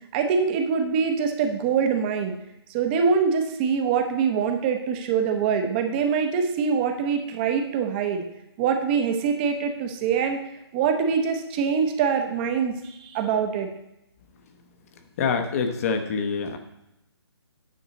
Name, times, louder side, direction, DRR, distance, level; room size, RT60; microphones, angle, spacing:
voice 1, 0.1-2.3 2.7-8.2 8.6-10.4 10.7-13.7, right 6 dB, 25° right, 5 dB, 0.8 m, -24 dB
voice 2, 15.2-16.6, left 5 dB, 35° left, 6 dB, 0.9 m, -25 dB
9.4 x 5.9 x 4.0 m, 0.89 s
figure-of-eight pair, 150°, 14 cm